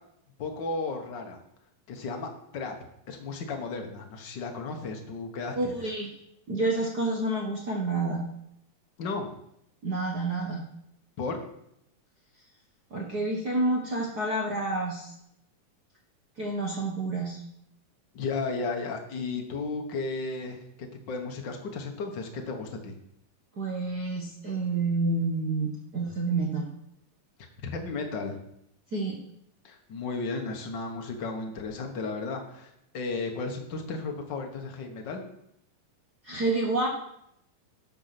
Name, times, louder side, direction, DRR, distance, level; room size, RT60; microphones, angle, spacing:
voice 1, 0.4-1.4 1.9-2.7 3.1-5.7 9.0-9.3 11.2-11.4 18.1-23.0 27.6-28.4 29.6-35.2, left 3 dB, 65° left, 3 dB, 1.1 m, -34 dB
voice 2, 5.5-6.1 6.5-8.2 9.8-10.6 12.9-15.1 16.4-17.4 23.6-26.7 28.9-29.2 36.2-36.9, right 2 dB, 70° right, -1 dB, 0.9 m, -29 dB
12.5 x 6.8 x 5.9 m, 0.76 s
omnidirectional pair, 4.0 m